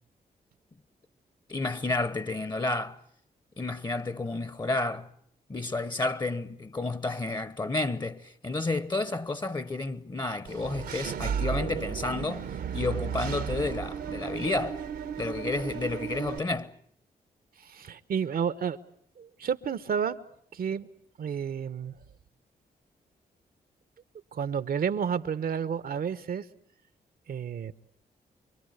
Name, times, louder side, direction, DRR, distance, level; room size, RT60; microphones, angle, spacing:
voice 1, 1.5-3.0 3.6-5.1 5.5-12.5 12.7-14.8 15.2-16.7, left 2 dB, 25° left, 1.1 m, -31 dB
Engine / Mechanisms, 10.5-16.4, right 7 dB, 85° right, 1.8 m, -34 dB
voice 2, 17.6-18.8 19.2-20.2 20.5-20.9 21.2-22.0 24.3-26.4 27.3-27.7, right 7 dB, 65° right, 1.1 m, -31 dB
26.0 x 23.5 x 8.1 m
cardioid pair, 65°, 16 cm